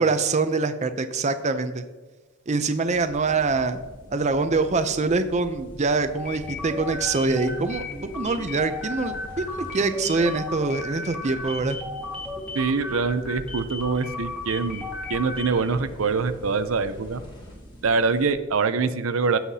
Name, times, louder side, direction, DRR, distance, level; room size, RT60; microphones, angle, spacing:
voice 1, 0.0-1.8 2.5-3.8 4.1-7.8 8.1-11.8, right 3 dB, 35° right, 9 dB, 0.5 m, -24 dB
sound 1, 2.8-18.4, equal, 25° left, 2.2 m, -45 dB
sound 2, 6.2-15.7, left 2 dB, 5° left, 1.5 m, -34 dB
voice 2, 12.5-17.2 17.8-19.4, right 4 dB, 85° right, 11 dB, 0.6 m, -24 dB
16.0 x 5.7 x 2.8 m, 1.3 s
head